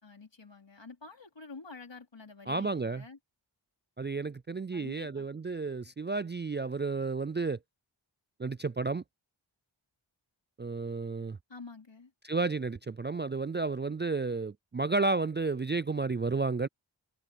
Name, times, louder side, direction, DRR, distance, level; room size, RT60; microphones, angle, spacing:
voice 1, 0.0-3.2 4.7-5.3 11.5-12.1, left 4 dB, 65° left, 4.1 m, -48 dB
voice 2, 2.5-3.0 4.0-7.6 8.4-9.0 10.6-11.4 12.2-16.7, right 3 dB, 25° right, 0.3 m, -32 dB
wide cardioid pair, 55°, 47 cm